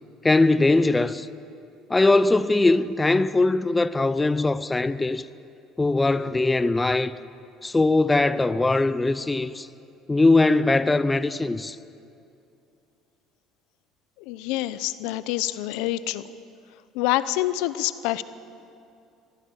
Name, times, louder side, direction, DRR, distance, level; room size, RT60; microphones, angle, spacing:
voice 1, 0.2-1.3 1.9-5.3 5.8-7.2 7.6-9.7 10.1-11.8, left 2 dB, 15° left, 0.6 m, -21 dB
voice 2, 14.2-16.2 16.9-18.2, left 15 dB, 80° left, 0.7 m, -26 dB
23.0 x 15.5 x 8.6 m
supercardioid pair, 105°, 0 cm